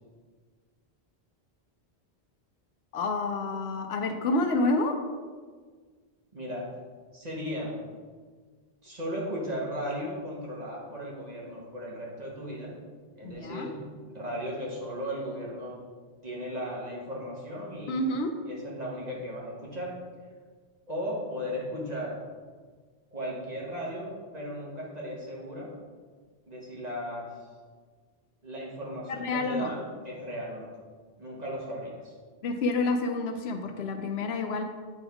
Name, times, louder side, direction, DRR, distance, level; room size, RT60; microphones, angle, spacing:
voice 1, 2.9-5.0 13.3-13.7 17.9-18.3 29.2-29.7 32.4-34.6, left 2 dB, 75° left, 5 dB, 0.8 m, -28 dB
voice 2, 6.3-6.7 7.1-7.7 8.8-12.8 13.2-15.8 16.2-18.1 18.4-20.0 20.9-22.2 23.1-25.7 26.5-27.3 28.4-30.7 31.2-32.1, equal, 40° right, -4 dB, 1.3 m, -36 dB
8.4 x 3.5 x 3.5 m, 1.5 s
omnidirectional pair, 1.1 m